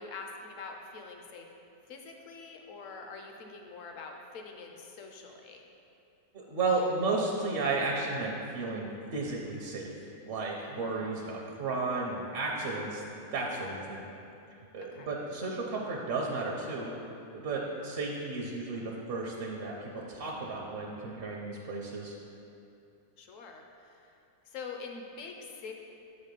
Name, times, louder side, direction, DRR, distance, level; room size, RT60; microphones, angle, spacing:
voice 1, 0.0-1.5 1.9-5.6 10.6-11.1 14.9-15.1 23.2-24.2 24.4-25.7, left 4 dB, 65° left, 3 dB, 1.0 m, -45 dB
voice 2, 6.3-9.9 10.3-13.0 13.3-14.0 14.7-16.9 17.3-22.1, right 3 dB, 55° right, -1 dB, 0.7 m, -33 dB
7.4 x 4.1 x 5.3 m, 2.7 s
omnidirectional pair, 1.6 m